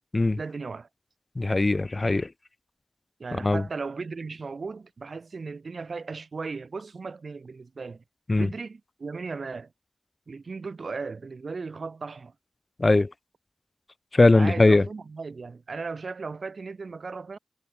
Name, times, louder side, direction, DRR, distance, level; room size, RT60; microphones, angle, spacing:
voice 1, 0.4-0.9 3.2-8.0 8.3-9.7 10.3-12.3 14.3-17.4, right 4 dB, 80° right, 5.8 m, -36 dB
voice 2, 1.3-2.3 3.4-3.6 8.3-8.5 12.8-13.1 14.1-14.8, left 2 dB, 45° left, 1.5 m, -20 dB
cardioid pair, 45°, 0 cm